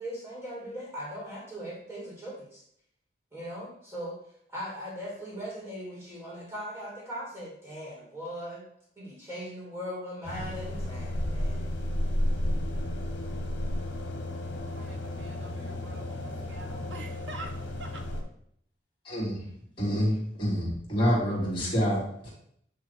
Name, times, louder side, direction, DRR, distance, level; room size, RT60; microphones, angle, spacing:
voice 1, 0.0-2.6 3.3-4.2 4.5-8.6 9.0-11.7, equal, 10° right, -5 dB, 2.5 m, -39 dB
sound 1, 10.2-18.2, left 1 dB, 70° left, 1.3 m, -32 dB
voice 2, 14.3-18.0, right 1 dB, 75° right, 4 dB, 1.2 m, -46 dB
voice 3, 19.0-19.5 19.8-22.1, equal, 25° left, -6 dB, 3.4 m, -27 dB
9.8 x 3.4 x 4.8 m, 0.68 s
head